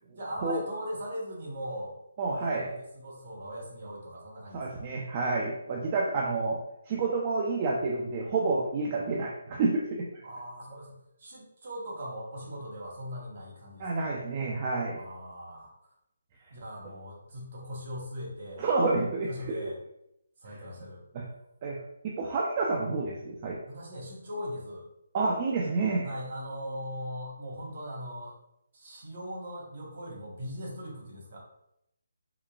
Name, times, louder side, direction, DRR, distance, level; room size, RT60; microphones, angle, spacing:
voice 1, 0.1-1.9 2.3-4.8 10.2-14.1 14.9-15.7 16.5-18.6 19.3-19.8 20.4-21.0 23.7-24.8 26.0-28.3 28.7-31.4, equal, 50° right, -3 dB, 1.1 m, -40 dB
voice 2, 2.2-2.7 4.5-6.6 6.9-10.1 13.8-15.0 18.5-19.6 21.1-21.2 21.6-23.6 25.1-26.1, right 3 dB, 30° right, -2 dB, 0.4 m, -29 dB
3.7 x 2.2 x 2.3 m, 0.79 s
hypercardioid pair, 160°, 0 cm